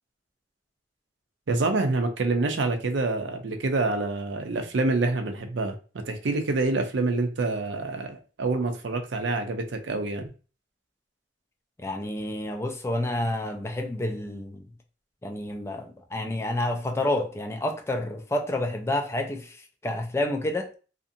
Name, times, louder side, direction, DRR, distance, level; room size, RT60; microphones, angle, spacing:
voice 1, 1.5-10.3, right 3 dB, 80° right, 0.5 m, -27 dB
voice 2, 11.8-14.6 15.2-20.7, left 1 dB, 15° left, 0.3 m, -29 dB
2.6 x 2.5 x 2.5 m
head